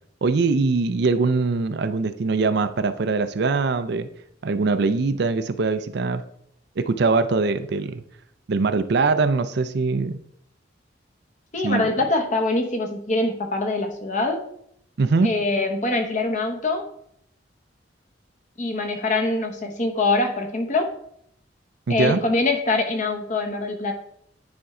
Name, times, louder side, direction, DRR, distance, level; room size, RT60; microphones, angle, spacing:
voice 1, 0.2-4.1 4.4-6.2 6.8-8.0 8.5-10.2 11.6-11.9 15.0-15.3 21.9-22.2, right 4 dB, 60° right, 10 dB, 0.4 m, -22 dB
voice 2, 11.5-14.4 15.2-16.9 18.6-20.9 21.9-23.9, left 2 dB, 40° left, 4 dB, 1.0 m, -24 dB
9.5 x 4.4 x 3.7 m, 0.69 s
head